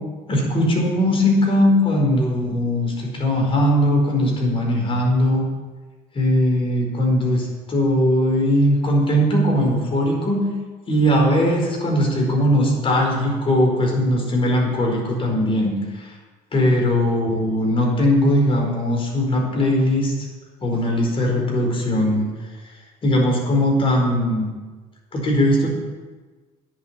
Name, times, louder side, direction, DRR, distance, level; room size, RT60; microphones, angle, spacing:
voice 1, 0.3-5.5 6.1-10.5 10.9-16.1 16.5-20.1 20.6-22.3 23.0-24.5 25.1-25.7, left 1 dB, 35° left, -1 dB, 4.5 m, -19 dB
10.5 x 7.5 x 8.9 m, 1.3 s
cardioid pair, 100°, 17 cm